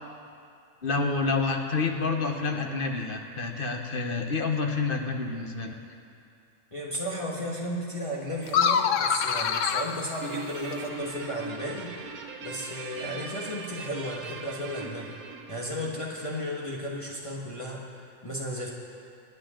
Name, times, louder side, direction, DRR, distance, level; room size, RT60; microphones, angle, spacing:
voice 1, 0.8-5.7, left 4 dB, 40° left, 3 dB, 1.2 m, -28 dB
voice 2, 6.7-11.9 12.4-15.1 15.5-18.7, equal, 20° left, -4 dB, 1.5 m, -34 dB
sound 1, 8.5-11.0, left 7 dB, 65° left, 0.9 m, -26 dB
Guitar, 10.2-16.9, right 4 dB, 85° right, 1.5 m, -40 dB
27.0 x 9.5 x 3.8 m, 2.4 s
omnidirectional pair, 1.5 m